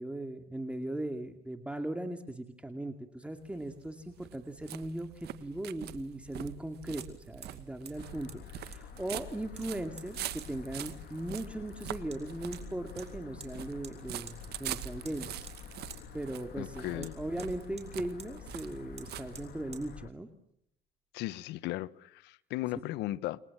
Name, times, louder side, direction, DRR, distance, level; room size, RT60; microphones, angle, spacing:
voice 1, 0.0-15.5 16.1-20.3 22.7-22.8, right 1 dB, 5° right, 2.4 m, -38 dB
sound 1, 3.3-19.9, right 13 dB, 75° right, 1.7 m, -45 dB
Hammer, 5.1-5.2 7.0-7.1 7.4-7.6 7.9-8.0 8.3-8.4 8.7-9.3 9.6-10.1 10.4-10.5 10.8-10.9 12.1-12.2 12.5-12.6 13.0-13.5 13.8-14.0 14.3-14.4 14.7-15.2 15.5-15.6 15.9-16.0 17.0-17.9 18.2-18.3 18.6-18.7 19.0-19.1 19.3-19.5 19.7-19.8, right 6 dB, 40° right, 6.8 m, -49 dB
sound 2, 7.9-20.1, left 10 dB, 70° left, 2.4 m, -49 dB
voice 2, 16.6-17.1 21.1-23.4, left 16 dB, 90° left, 1.0 m, -36 dB
30.0 x 22.5 x 7.3 m
cardioid pair, 110°, 17 cm